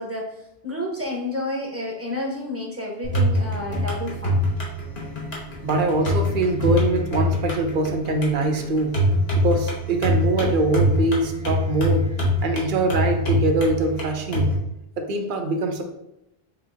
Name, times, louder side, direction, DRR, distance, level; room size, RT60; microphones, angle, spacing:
voice 1, 0.0-4.4, left 1 dB, 15° right, -3 dB, 1.0 m, -30 dB
sound 1, 3.0-14.5, left 1 dB, 75° left, 1.5 m, -24 dB
voice 2, 5.4-9.0 9.4-12.1 12.4-14.5 15.0-15.8, right 2 dB, 55° right, 5 dB, 0.8 m, -23 dB
6.6 x 2.8 x 2.7 m, 0.83 s
omnidirectional pair, 1.0 m